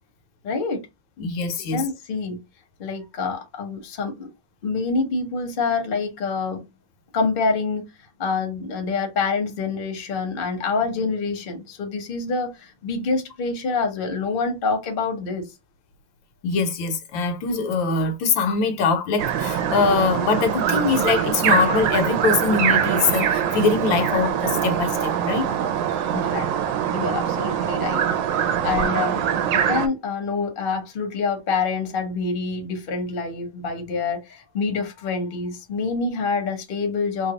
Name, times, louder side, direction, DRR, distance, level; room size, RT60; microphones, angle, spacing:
voice 1, 0.4-0.8 1.7-2.4 2.8-4.3 4.6-6.6 7.1-7.8 8.2-15.5 26.1-26.5 26.9-28.1 28.4-37.3, left 4 dB, 40° left, 0.8 m, -26 dB
voice 2, 1.2-1.8 16.4-25.5, left 4 dB, 75° left, 1.4 m, -22 dB
sound 1, 19.2-29.9, right 9 dB, 75° right, 1.2 m, -23 dB
3.3 x 2.3 x 3.9 m
omnidirectional pair, 2.2 m